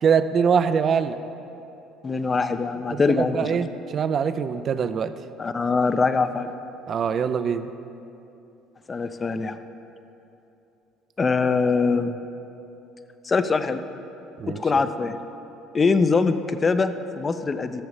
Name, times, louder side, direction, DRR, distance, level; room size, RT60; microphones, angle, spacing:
voice 1, 0.0-1.2 2.9-5.1 6.9-7.7 14.4-14.6, right 6 dB, 50° right, 12 dB, 0.5 m, -23 dB
voice 2, 2.0-3.4 5.4-6.5 8.9-9.6 11.2-12.2 13.2-13.8 14.5-15.2 15.7-17.8, left 4 dB, 30° left, 10 dB, 0.6 m, -23 dB
13.5 x 6.9 x 5.0 m, 2.9 s
hypercardioid pair, 70°, 0 cm